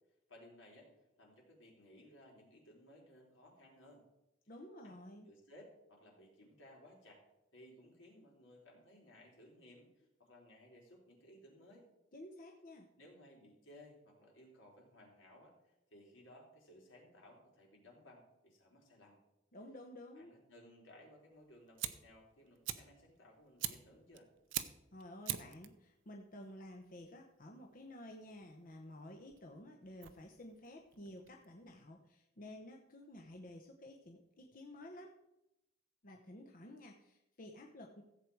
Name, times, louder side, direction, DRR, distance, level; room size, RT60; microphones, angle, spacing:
voice 1, 0.3-4.0 4.8-5.0 5.2-7.2 7.5-11.9 13.0-19.2 20.1-24.3, left 1 dB, 80° left, -1 dB, 3.7 m, -60 dB
voice 2, 4.5-5.3 12.1-12.9 19.5-20.4 24.9-35.1 36.0-38.0, left 1 dB, 45° left, 2 dB, 0.9 m, -52 dB
Fire, 21.3-31.8, right 12 dB, 75° right, 0.7 m, -46 dB
15.0 x 7.9 x 4.7 m, 0.90 s
head